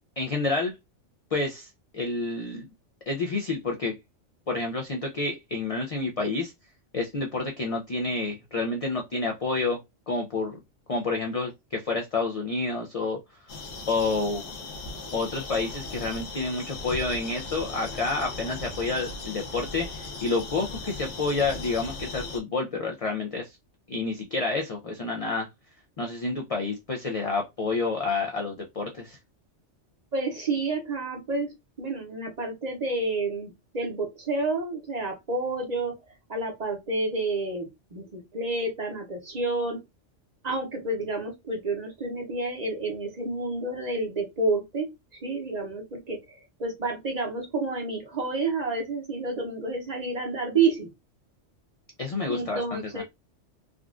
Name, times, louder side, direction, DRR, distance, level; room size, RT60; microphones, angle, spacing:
voice 1, 0.2-0.7 1.3-2.7 3.1-3.9 4.5-6.5 6.9-9.8 10.1-10.6 10.9-13.2 13.9-14.4 15.1-23.5 23.9-25.5 26.0-29.2 52.0-53.0, left 3 dB, 60° left, 0.3 m, -29 dB
sound 1, 13.5-22.4, left 3 dB, 85° left, 1.1 m, -38 dB
voice 2, 30.1-35.9 36.3-39.8 40.4-50.9 52.3-53.0, right 3 dB, 40° right, 0.7 m, -29 dB
3.6 x 2.3 x 2.4 m
omnidirectional pair, 1.3 m